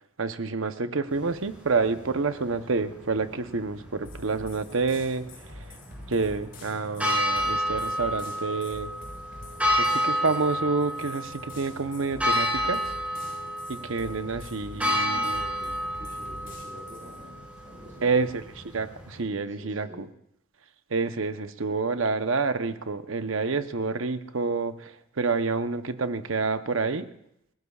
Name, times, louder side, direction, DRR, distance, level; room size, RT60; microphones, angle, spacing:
voice 1, 0.2-5.2 5.7-5.8 6.1-8.9 9.8-12.9 13.7-15.4 18.0-20.1 20.9-27.1, right 4 dB, 65° right, 10 dB, 0.8 m, -28 dB
sound 1, 1.1-19.2, equal, 5° right, 5.8 m, -31 dB
sound 2, 4.0-17.2, left 2 dB, 45° left, 7.1 m, -46 dB
voice 2, 14.7-17.4 17.6-18.2 19.5-20.0, equal, 40° right, -4 dB, 7.7 m, -47 dB
28.5 x 16.5 x 2.4 m, 0.77 s
head